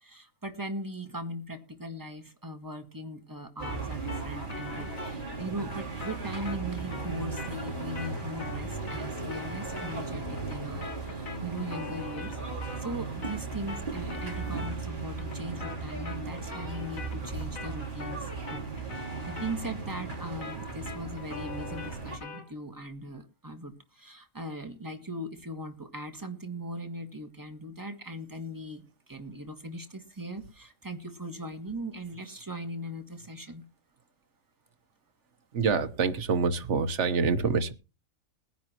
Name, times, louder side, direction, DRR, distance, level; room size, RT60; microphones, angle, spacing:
voice 1, 0.0-12.4 12.8-18.7 18.9-33.6, right 1 dB, 15° right, 1.7 m, -39 dB
sound 1, 3.6-13.0 13.2-22.5, left 4 dB, 75° left, 2.7 m, -44 dB
sound 2, 3.6-22.2, right 4 dB, 35° right, 3.6 m, -37 dB
voice 2, 35.5-37.7, right 5 dB, 60° right, 1.4 m, -26 dB
20.5 x 10.0 x 3.0 m
omnidirectional pair, 1.4 m